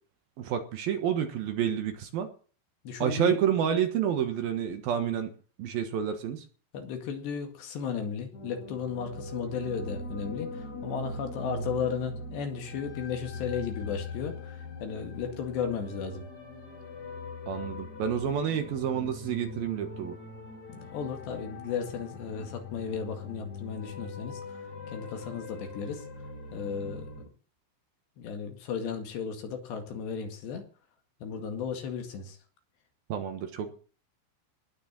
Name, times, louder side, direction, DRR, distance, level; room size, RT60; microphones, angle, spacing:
voice 1, 0.4-2.3 3.0-5.3 5.6-6.4 17.5-20.2 33.1-33.7, right 9 dB, 65° right, 7 dB, 2.8 m, -29 dB
voice 2, 2.9-3.4 6.7-16.3 20.7-24.4 24.9-26.0 26.5-27.1 28.2-30.6 31.2-32.4, left 6 dB, 70° left, 5 dB, 4.2 m, -35 dB
sound 1, 8.3-27.2, left 2 dB, 40° left, 4.8 m, -41 dB
19.5 x 6.6 x 7.5 m, 0.40 s
omnidirectional pair, 5.2 m